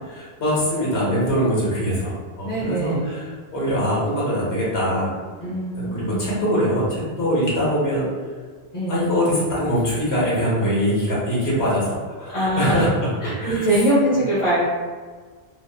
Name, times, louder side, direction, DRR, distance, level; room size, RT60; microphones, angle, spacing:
voice 1, 0.1-5.1 5.7-8.1 8.9-13.7, equal, 80° left, -7 dB, 1.3 m, -23 dB
voice 2, 2.4-3.1 5.4-6.2 8.7-8.9 12.3-12.8 13.2-14.6, right 1 dB, 35° left, -10 dB, 0.8 m, -22 dB
2.7 x 2.7 x 2.2 m, 1.5 s
omnidirectional pair, 1.1 m